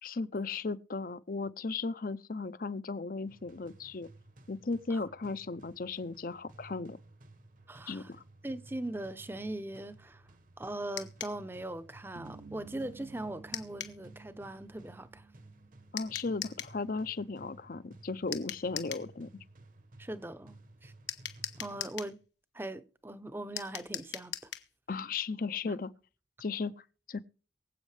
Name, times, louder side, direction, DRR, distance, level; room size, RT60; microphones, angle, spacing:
voice 1, 0.0-4.1 4.5-7.0 7.9-8.2 15.9-19.3 24.9-25.9 26.4-27.2, left 4 dB, 50° left, 0.6 m, -36 dB
sound 1, 3.3-22.3, right 2 dB, 45° right, 1.1 m, -56 dB
voice 2, 7.7-8.1 8.4-10.2 10.6-15.2 20.0-20.9 21.6-22.2 22.5-24.5 25.6-25.8, right 1 dB, 10° right, 0.7 m, -40 dB
sound 2, 11.0-11.4 13.5-14.0 16.0-16.8 18.3-19.1 21.1-22.2 23.6-24.7, left 11 dB, 80° left, 1.4 m, -40 dB
sound 3, 12.2-16.5, right 4 dB, 65° right, 0.9 m, -53 dB
23.5 x 8.3 x 3.3 m
head